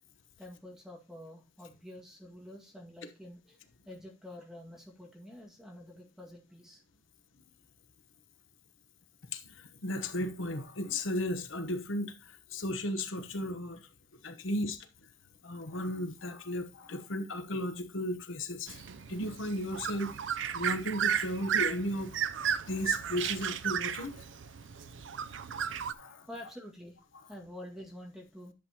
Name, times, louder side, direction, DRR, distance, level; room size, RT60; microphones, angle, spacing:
voice 1, 0.4-6.8 26.3-27.0 27.3-28.5, left 1 dB, 5° right, 1.9 m, -48 dB
voice 2, 9.3-13.8 14.2-14.8 15.4-18.8 19.1-20.2 20.5-22.1 22.7-24.2 25.9-26.3, left 1 dB, 80° left, 1.1 m, -35 dB
sound 1, 18.7-25.9, right 8 dB, 65° right, 0.5 m, -34 dB
11.0 x 7.4 x 2.9 m
head